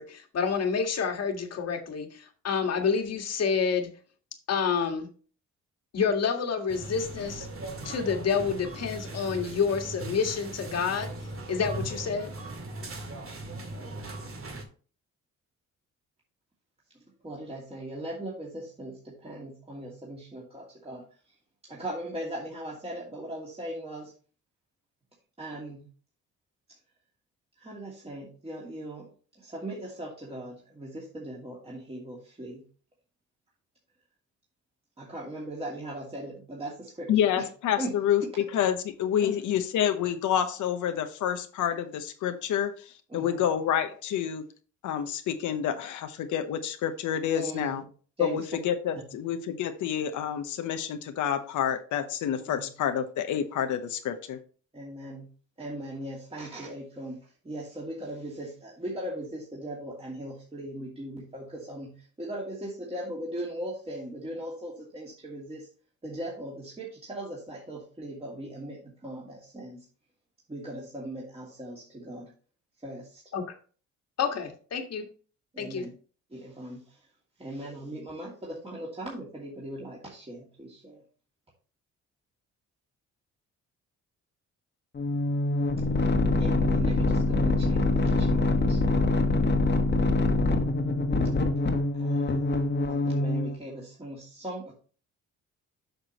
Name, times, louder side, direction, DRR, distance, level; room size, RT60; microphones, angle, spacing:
voice 1, 0.0-3.9 4.5-5.1 5.9-7.5 7.8-11.1 11.5-12.3 73.3-73.4 74.2-75.1 75.6-75.9, left 6 dB, 55° left, 5 dB, 1.8 m, -28 dB
sound 1, 6.7-14.7, right 2 dB, 45° right, 2.1 m, -39 dB
voice 2, 17.2-21.0 21.6-24.1 25.4-25.9 27.6-29.1 29.4-32.6 35.0-37.1 37.4-37.5 37.8-37.9 38.2-38.3 39.2-39.3 43.1-43.5 47.3-47.8 48.2-48.4 52.5-52.7 54.7-55.3 55.6-65.7 66.0-69.8 70.5-72.3 72.8-73.2 75.5-75.9 76.3-77.0 77.4-81.0 86.4-88.8 91.9-94.7, right 1 dB, 20° right, -4 dB, 2.6 m, -39 dB
voice 3, 37.1-44.4 44.8-47.8 48.2-54.4, left 9 dB, 80° left, 7 dB, 1.0 m, -28 dB
sound 2, 84.9-93.6, left 2 dB, 35° left, 1.4 m, -25 dB
8.0 x 6.0 x 3.0 m, 0.39 s
cardioid pair, 90°, 30 cm